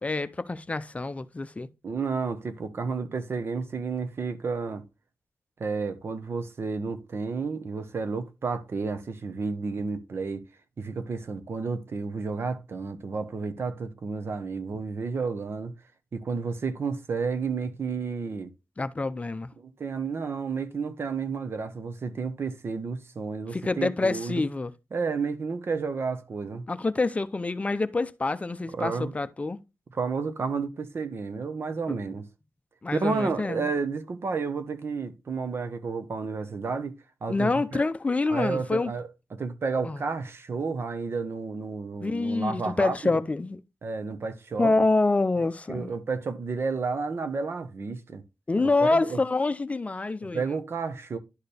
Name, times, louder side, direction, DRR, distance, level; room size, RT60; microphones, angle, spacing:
voice 1, 0.0-1.7 18.8-19.5 23.5-24.7 26.7-29.6 32.8-33.7 37.3-38.9 39.8-40.0 42.0-43.6 44.6-45.9 48.5-50.6, left 3 dB, 30° left, 0.6 m, -26 dB
voice 2, 1.8-4.8 5.6-10.4 10.8-15.7 16.1-18.5 19.6-24.4 24.9-26.7 28.8-29.1 30.0-32.2 32.9-37.0 37.2-37.8 38.3-42.9 43.8-44.7 45.7-48.2 49.1-49.2 50.3-51.2, right 4 dB, 60° right, 1.1 m, -31 dB
11.5 x 4.4 x 3.4 m
wide cardioid pair, 90°, 5 cm